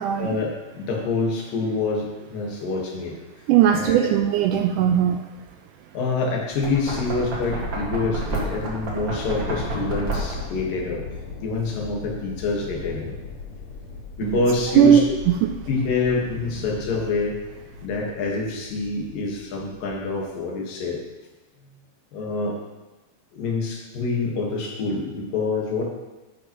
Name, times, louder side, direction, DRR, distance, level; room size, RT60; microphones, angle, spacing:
voice 1, 0.2-3.1 3.7-4.1 5.9-11.0 11.4-13.2 14.2-15.0 15.7-17.4 17.8-21.0 22.1-22.6 23.3-25.8, left 3 dB, 80° left, -1 dB, 3.3 m, -26 dB
voice 2, 3.5-5.2 14.2-14.4 14.8-15.5, right 9 dB, 80° right, 6 dB, 1.8 m, -18 dB
Knock, 6.5-10.6, right 2 dB, 45° right, 1.8 m, -29 dB
sound 1, 8.3-10.2 12.3-14.0 15.9-17.9, equal, 65° right, 3.7 m, -43 dB
sound 2, 9.2-20.3, left 5 dB, 55° left, 2.4 m, -39 dB
11.5 x 10.5 x 3.1 m, 1.1 s
omnidirectional pair, 4.0 m